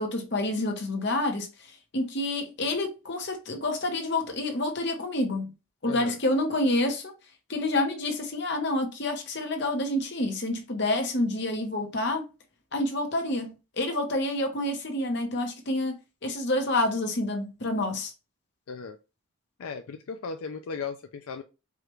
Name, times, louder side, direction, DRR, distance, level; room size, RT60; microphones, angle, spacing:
voice 1, 0.0-1.5 1.9-5.5 5.8-7.1 7.5-12.2 12.7-16.0 16.2-18.1, left 1 dB, 50° left, 1.0 m, -28 dB
voice 2, 5.8-6.2 18.7-19.0 19.6-21.4, left 5 dB, 80° left, 0.4 m, -36 dB
4.8 x 2.4 x 3.1 m
head